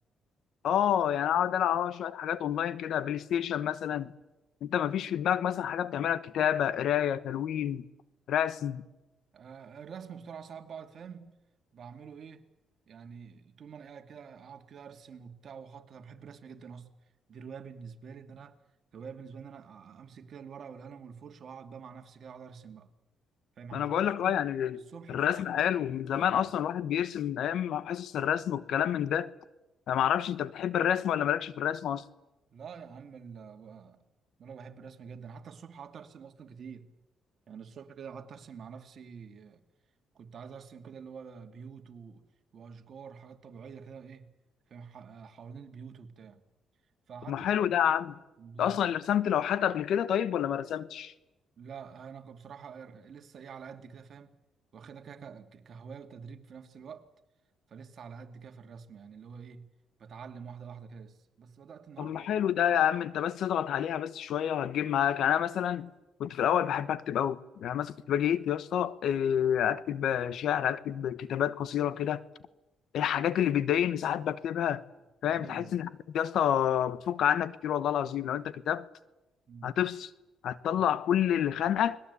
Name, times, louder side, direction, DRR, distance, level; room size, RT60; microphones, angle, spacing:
voice 1, 0.6-4.1 4.6-7.9 8.3-8.8 23.7-24.8 25.1-29.3 29.9-32.0 47.3-48.2 48.6-51.1 62.0-65.9 66.2-72.2 72.9-74.8 75.2-75.9 76.1-78.8 79.6-80.1 80.4-82.0, left 10 dB, 75° left, 1.1 m, -28 dB
voice 2, 9.3-11.3 11.7-12.5 12.9-16.9 17.3-18.6 18.9-22.9 23.6-24.4 24.7-25.7 26.2-26.5 32.5-34.0 34.4-36.9 37.5-39.6 40.1-42.2 42.5-44.3 44.7-46.4 47.1-47.7 48.4-48.9 51.6-54.4 54.7-57.1 57.7-59.7 60.0-62.3 75.3-75.9 79.5-79.7 80.7-80.8, right 6 dB, 55° right, 2.5 m, -47 dB
29.5 x 21.0 x 8.4 m
cardioid pair, 90°, 0 cm